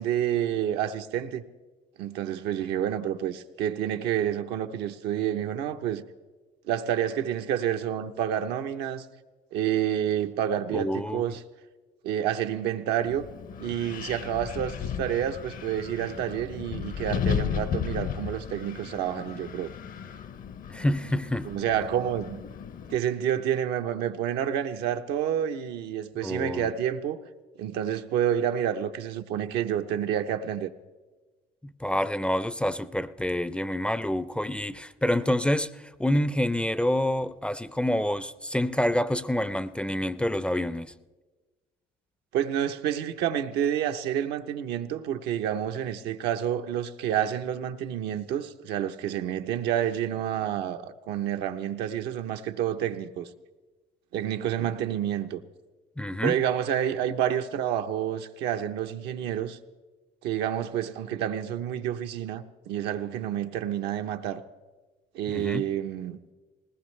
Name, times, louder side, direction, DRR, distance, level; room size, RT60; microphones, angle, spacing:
voice 1, 0.0-1.4 2.0-6.0 6.7-9.0 9.5-11.4 12.0-13.2 13.6-19.7 21.4-22.4 22.9-27.2 27.6-30.7 42.3-53.3 54.1-55.4 56.2-59.6 60.2-64.4 65.1-66.2, right 10 dB, 85° right, 0.8 m, -29 dB
voice 2, 10.7-11.2 20.7-21.5 26.2-26.7 31.6-40.9 56.0-56.4 65.3-65.7, left 1 dB, 5° left, 0.4 m, -27 dB
Wind, 13.0-23.0, left 8 dB, 55° left, 0.7 m, -35 dB
20.0 x 18.5 x 3.2 m
cardioid pair, 110°, 17 cm